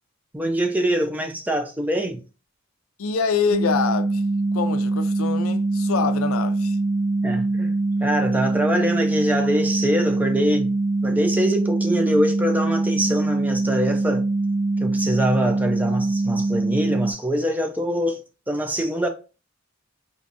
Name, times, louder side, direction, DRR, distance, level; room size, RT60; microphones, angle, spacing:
voice 1, 0.3-2.2 7.2-7.7 8.0-10.7 11.0-14.2 14.8-18.2 18.5-19.1, equal, 10° right, 0.5 m, -24 dB
voice 2, 3.0-4.2 4.5-6.8, left 5 dB, 85° left, 0.4 m, -25 dB
sound 1, 3.5-17.1, right 2 dB, 65° right, 0.4 m, -23 dB
4.5 x 2.6 x 2.6 m
head